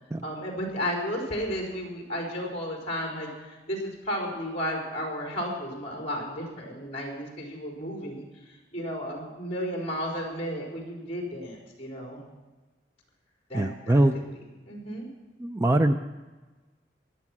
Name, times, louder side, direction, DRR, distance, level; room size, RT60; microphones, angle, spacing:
voice 1, 0.2-12.2 13.5-15.1, equal, 35° left, 0 dB, 4.3 m, -33 dB
voice 2, 13.5-14.2 15.4-15.9, right 1 dB, 15° right, 8 dB, 0.4 m, -22 dB
17.0 x 11.5 x 6.1 m, 1.2 s
head